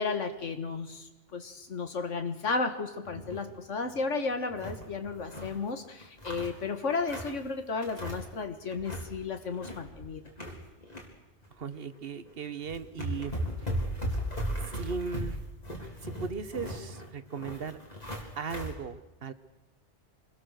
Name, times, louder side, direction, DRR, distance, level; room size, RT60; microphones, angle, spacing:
voice 1, 0.0-10.2, left 4 dB, 75° left, 7 dB, 1.9 m, -33 dB
sound 1, 3.1-3.5 3.9-4.0 4.3-5.6 6.0-7.4 7.8-8.4 8.7-9.1 9.4-11.1 11.4-11.6 12.3-12.4 12.7-18.7, equal, 35° left, 3.8 m, -37 dB
voice 2, 11.5-13.3 13.6-13.7 14.7-15.4 16.0-17.8 18.4-19.3, right 5 dB, 50° right, 12 dB, 1.3 m, -37 dB
25.0 x 20.5 x 6.5 m, 1.0 s
omnidirectional pair, 1.3 m